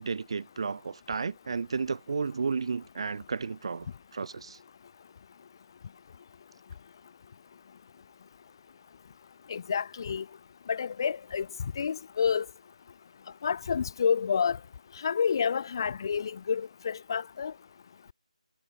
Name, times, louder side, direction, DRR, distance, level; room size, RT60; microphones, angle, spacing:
voice 1, 0.0-3.9 4.1-4.6, right 5 dB, 45° right, 5.3 m, -32 dB
voice 2, 9.5-10.2 10.7-11.5 11.8-12.4 13.4-14.6 15.0-17.5, left 6 dB, 35° left, 6.7 m, -29 dB
figure-of-eight pair, 160°, 4 cm